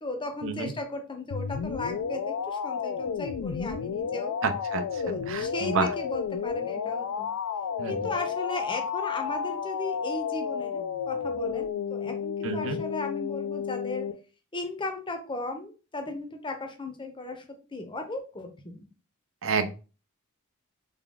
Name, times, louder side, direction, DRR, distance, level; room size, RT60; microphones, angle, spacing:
voice 1, 0.0-4.4 5.0-7.3 7.9-14.1 14.5-17.4 17.7-18.9, left 2 dB, 20° left, 5 dB, 0.6 m, -36 dB
sound 1, 1.3-14.1, left 6 dB, 85° left, 0.3 m, -32 dB
voice 2, 4.4-4.8 5.3-5.9 7.8-7.9 12.4-12.8 19.4-19.7, right 5 dB, 60° right, 9 dB, 0.5 m, -28 dB
3.5 x 2.2 x 3.7 m, 0.34 s
head